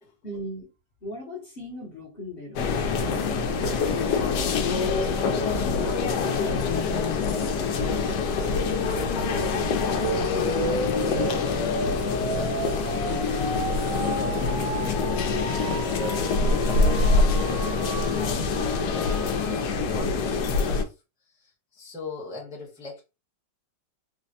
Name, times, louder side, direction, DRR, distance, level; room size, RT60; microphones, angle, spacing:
voice 1, 0.2-0.7 1.0-2.7 3.3-7.0 7.3-8.4, left 1 dB, 40° left, 0.9 m, -40 dB
sound 1, 2.6-20.8, left 4 dB, 80° left, 1.2 m, -25 dB
voice 2, 10.0-11.9 12.3-13.6 13.9-20.9 21.3-23.0, left 2 dB, 5° right, 0.8 m, -41 dB
sound 2, 10.0-20.0, right 3 dB, 60° right, 1.1 m, -34 dB
3.9 x 2.1 x 2.7 m
omnidirectional pair, 1.9 m